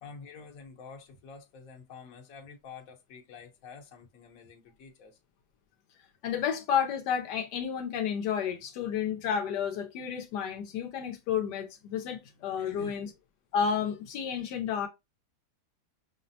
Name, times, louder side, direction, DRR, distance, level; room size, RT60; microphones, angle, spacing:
voice 1, 0.0-5.2 12.6-13.0, left 5 dB, 60° left, 1.2 m, -48 dB
voice 2, 6.2-13.1 13.5-14.9, left 7 dB, 85° left, 1.2 m, -31 dB
5.7 x 2.0 x 2.6 m
omnidirectional pair, 1.8 m